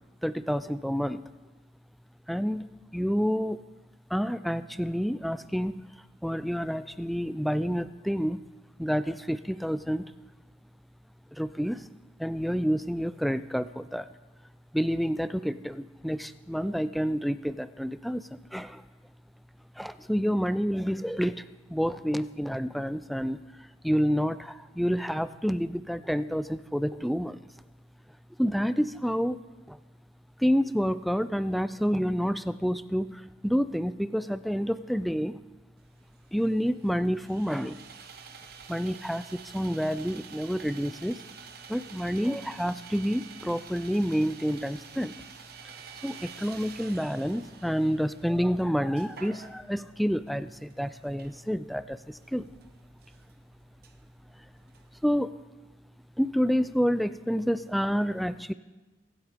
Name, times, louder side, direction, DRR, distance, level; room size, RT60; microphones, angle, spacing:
voice 1, 0.2-1.2 2.3-2.6 2.9-3.6 4.1-5.8 6.2-8.4 8.8-10.0 11.3-11.8 12.2-14.1 14.7-18.8 19.8-21.4 21.7-23.4 23.8-27.4 28.4-29.4 29.7-29.8 30.4-35.4 36.3-37.8 38.7-41.2 41.7-45.1 45.6-45.7 46.0-52.5 55.0-55.3 56.2-58.5, equal, ahead, 14 dB, 0.4 m, -28 dB
Sawing, 35.8-55.2, right 6 dB, 55° right, 1.1 m, -49 dB
23.0 x 8.1 x 5.1 m, 1.2 s
head